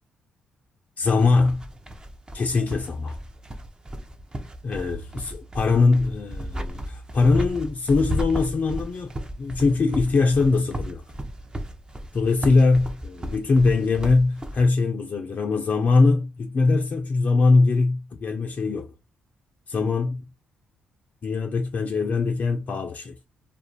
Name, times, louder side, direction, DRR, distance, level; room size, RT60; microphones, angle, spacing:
voice 1, 1.0-1.6 2.3-3.2 4.6-9.1 9.4-11.0 12.1-18.9 19.7-20.2 21.2-23.2, left 3 dB, 45° left, 0.4 m, -22 dB
sound 1, 1.2-14.6, equal, 20° right, 0.6 m, -34 dB
2.4 x 2.0 x 2.9 m
hypercardioid pair, 50°, 3 cm